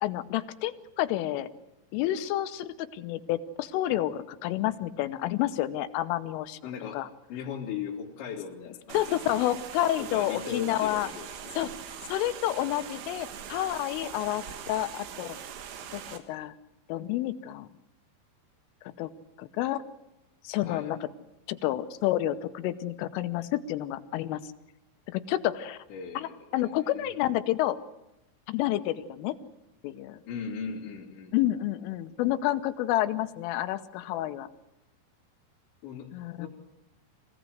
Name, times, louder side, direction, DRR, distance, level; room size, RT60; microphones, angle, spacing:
voice 1, 0.0-1.5 1.9-6.6 6.9-7.1 8.9-11.1 11.6-11.7 12.1-15.4 15.9-16.6 16.9-17.7 19.0-19.1 19.4-19.8 20.4-21.0 21.5-24.4 25.1-25.8 26.2-26.3 26.5-27.8 28.5-29.3 29.8-30.2 31.3-34.5 36.1-36.5, left 14 dB, 90° left, 11 dB, 3.5 m, -29 dB
voice 2, 6.6-7.0 7.3-9.6 10.0-11.5 20.6-20.9 25.9-27.1 30.3-31.4 35.8-36.1 36.4-36.5, left 7 dB, 65° left, -6 dB, 5.4 m, -38 dB
sound 1, 8.9-16.2, right 8 dB, 80° right, 4.2 m, -42 dB
25.5 x 16.5 x 7.9 m, 0.92 s
omnidirectional pair, 5.6 m